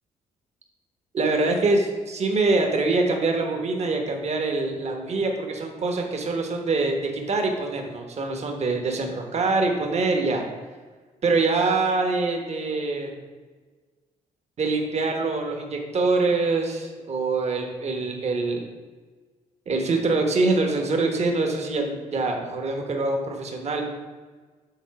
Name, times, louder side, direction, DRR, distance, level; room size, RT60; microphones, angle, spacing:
voice 1, 1.1-10.4 11.2-13.1 14.6-18.6 19.7-23.8, right 3 dB, 50° right, 2 dB, 1.3 m, -24 dB
7.2 x 3.9 x 5.8 m, 1.4 s
cardioid pair, 75°, 14 cm